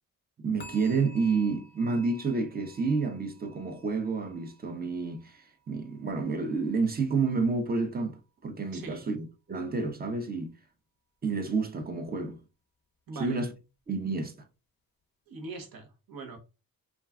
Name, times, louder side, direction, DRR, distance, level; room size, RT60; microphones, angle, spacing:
voice 1, 0.4-5.4 5.7-10.5 11.2-12.4 13.2-13.5 13.9-14.3, right 4 dB, 25° right, 0.5 m, -29 dB
sound 1, 0.6-7.7 8.0-8.4 8.9-9.0, equal, 30° left, 0.6 m, -54 dB
voice 2, 8.7-9.0 13.1-13.4 15.3-16.4, right 3 dB, 75° right, 0.9 m, -41 dB
2.4 x 2.2 x 3.4 m
cardioid pair, 115°, 35 cm